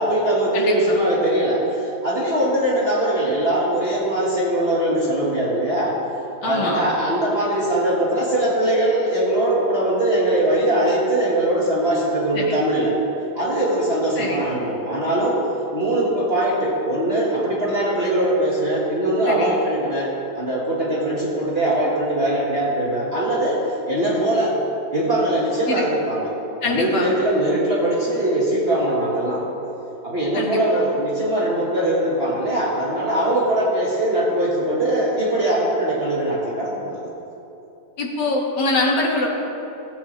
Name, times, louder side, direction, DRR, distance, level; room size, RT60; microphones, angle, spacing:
voice 1, 0.0-6.0 6.4-13.0 13.3-15.4 15.7-24.6 24.9-26.3 26.6-29.4 30.0-37.1, right 1 dB, 35° right, -6 dB, 1.6 m, -21 dB
voice 2, 0.5-1.0 6.4-6.8 12.3-12.6 14.2-14.5 19.3-19.6 25.7-25.9 26.6-27.1 30.3-30.9 38.0-39.3, left 2 dB, 60° left, -1 dB, 1.9 m, -24 dB
16.5 x 8.4 x 3.2 m, 2.9 s
omnidirectional pair, 2.1 m